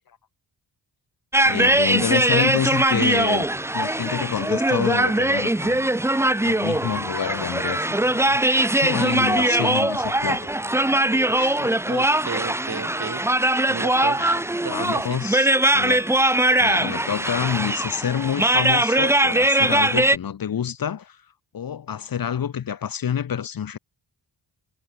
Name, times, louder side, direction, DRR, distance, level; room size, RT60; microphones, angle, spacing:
sound 1, 1.3-20.2, right 1 dB, 5° right, 0.9 m, -21 dB
voice 1, 1.4-3.5 3.7-5.9 6.4-10.5 11.3-11.8 13.9-14.4 14.7-16.1 16.6-21.2 21.5-23.8, left 8 dB, 55° left, 1.3 m, -28 dB
voice 2, 11.9-13.2 13.7-14.2 14.6-15.2, right 6 dB, 40° right, 5.9 m, -33 dB
wide cardioid pair, 155°, 43 cm